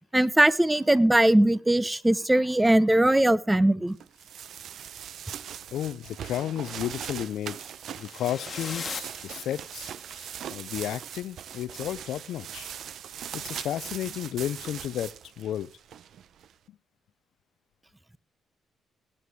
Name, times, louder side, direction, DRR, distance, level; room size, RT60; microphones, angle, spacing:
voice 1, 0.1-4.0, right 1 dB, 10° right, 18 dB, 0.7 m, -20 dB
sound 1, 4.0-16.5, right 9 dB, 70° right, 0.7 m, -40 dB
voice 2, 5.7-7.6 8.0-12.7 13.3-15.7 16.7-16.8, left 11 dB, 75° left, 19 dB, 0.6 m, -33 dB
sound 2, 7.9-10.1, left 6 dB, 45° left, 1.5 m, -40 dB
18.5 x 10.0 x 3.3 m, 0.40 s
cardioid pair, 90°, 0 cm